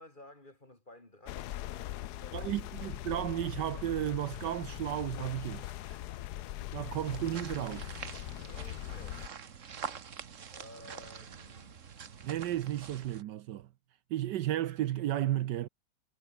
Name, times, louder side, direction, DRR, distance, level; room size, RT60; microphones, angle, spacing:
voice 1, 0.0-2.5 8.5-9.3 10.5-11.8, left 1 dB, 25° left, 4.2 m, -54 dB
sound 1, 1.3-9.3, left 14 dB, 70° left, 1.1 m, -41 dB
voice 2, 2.3-6.0 6.7-8.0 12.2-13.7 14.1-15.7, right 13 dB, 75° right, 1.3 m, -33 dB
sound 2, 6.9-13.2, right 7 dB, 45° right, 1.5 m, -45 dB
omnidirectional pair, 2.0 m